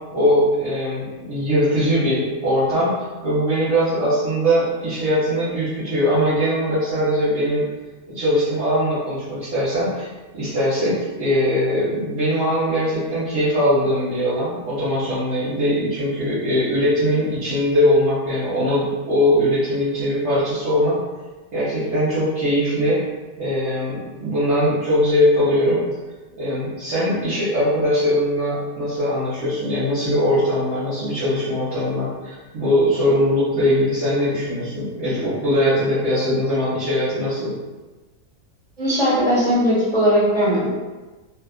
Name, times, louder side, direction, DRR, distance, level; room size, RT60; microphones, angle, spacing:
voice 1, 0.1-7.6 8.1-10.1 10.3-21.0 21.5-23.0 23.4-25.8 26.4-37.5, equal, 50° right, -12 dB, 1.1 m, -21 dB
voice 2, 38.8-40.7, equal, 30° right, -9 dB, 1.2 m, -18 dB
2.7 x 2.4 x 2.3 m, 1.2 s
omnidirectional pair, 1.6 m